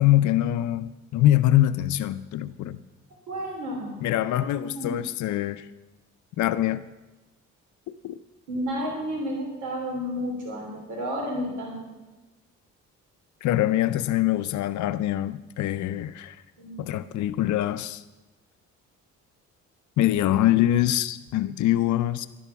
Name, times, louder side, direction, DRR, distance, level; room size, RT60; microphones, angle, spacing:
voice 1, 0.0-2.8 4.0-5.7 6.4-6.8 8.0-8.1 13.4-16.4 16.8-18.0 20.0-22.3, left 13 dB, 70° left, 0.6 m, -24 dB
voice 2, 3.3-4.0 4.6-5.0 8.5-11.9 16.6-16.9, equal, 85° right, 3.2 m, -31 dB
11.5 x 11.0 x 5.9 m
cardioid pair, 90°, 30 cm